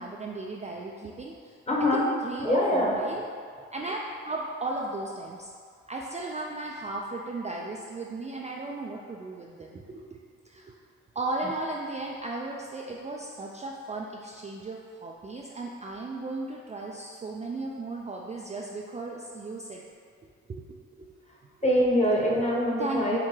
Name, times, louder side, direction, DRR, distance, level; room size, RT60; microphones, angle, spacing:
voice 1, 0.0-1.6 1.9-3.2 3.7-5.5 5.9-10.7 11.1-19.8 20.5-21.1 21.4-21.7 22.8-23.2, right 2 dB, 20° right, -2 dB, 0.4 m, -36 dB
voice 2, 1.7-2.1 2.4-2.9 21.6-23.2, left 1 dB, 20° left, -4 dB, 1.1 m, -24 dB
5.9 x 2.2 x 3.2 m, 2.1 s
hypercardioid pair, 45°, 31 cm